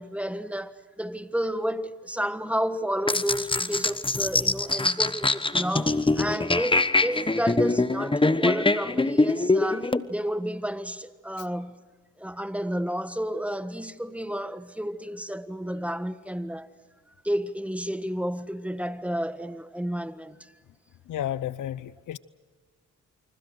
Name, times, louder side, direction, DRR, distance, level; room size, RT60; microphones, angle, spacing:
voice 1, 0.0-11.8 12.2-16.7 17.2-20.5, equal, 5° right, 1.4 m, -31 dB
sound 1, 3.1-10.0, left 2 dB, 15° left, 1.2 m, -23 dB
voice 2, 21.1-22.2, left 11 dB, 85° left, 0.8 m, -32 dB
29.0 x 25.0 x 6.4 m
cardioid pair, 55°, 30 cm